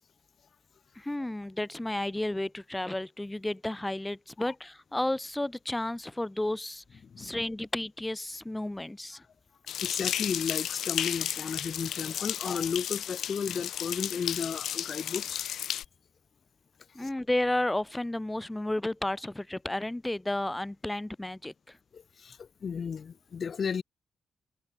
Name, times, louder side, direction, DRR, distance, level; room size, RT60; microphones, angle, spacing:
voice 1, 1.0-6.8 7.2-9.2 16.9-21.8, left 1 dB, 10° left, 3.9 m, -32 dB
voice 2, 7.0-7.4 9.8-15.4 21.9-23.8, left 6 dB, 50° left, 4.7 m, -34 dB
sound 1, 9.7-15.9, left 10 dB, 90° left, 1.4 m, -33 dB
cardioid pair, 120°, 0 cm